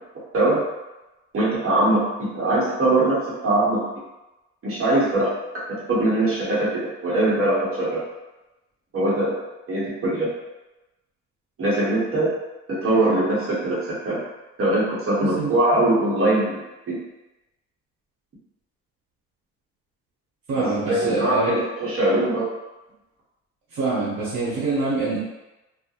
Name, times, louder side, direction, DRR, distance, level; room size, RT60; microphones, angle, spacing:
voice 1, 1.3-3.8 4.6-5.6 5.9-8.0 8.9-9.4 9.7-10.3 11.6-12.3 12.8-13.8 14.0-14.2 14.6-17.0 20.5-22.5, right 2 dB, 45° right, -7 dB, 0.9 m, -22 dB
voice 2, 15.2-15.5 20.5-21.6 23.7-25.2, right 3 dB, 70° right, -9 dB, 0.9 m, -25 dB
2.3 x 2.1 x 2.8 m, 1.0 s
cardioid pair, 90°, 30 cm